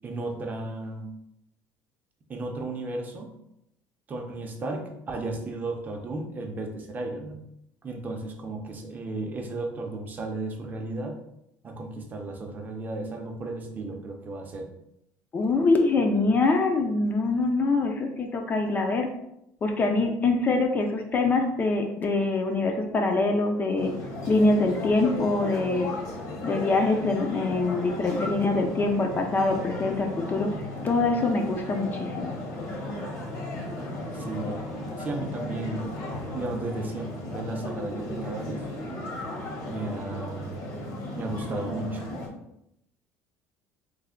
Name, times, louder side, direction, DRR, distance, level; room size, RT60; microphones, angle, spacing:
voice 1, 0.0-1.1 2.3-3.3 4.1-7.4 7.8-11.2 11.6-14.7 34.1-34.6 35.0-36.0 36.3-38.6 39.6-40.6 41.1-42.0, right 2 dB, 25° right, 2 dB, 0.5 m, -34 dB
voice 2, 15.3-19.1 19.6-23.9 24.3-25.9 26.4-30.5 30.8-32.4, left 3 dB, 25° left, 4 dB, 0.4 m, -24 dB
sound 1, 23.8-42.3, left 1 dB, 55° left, 0.8 m, -35 dB
3.2 x 2.1 x 3.6 m, 0.81 s
cardioid pair, 140°, 7 cm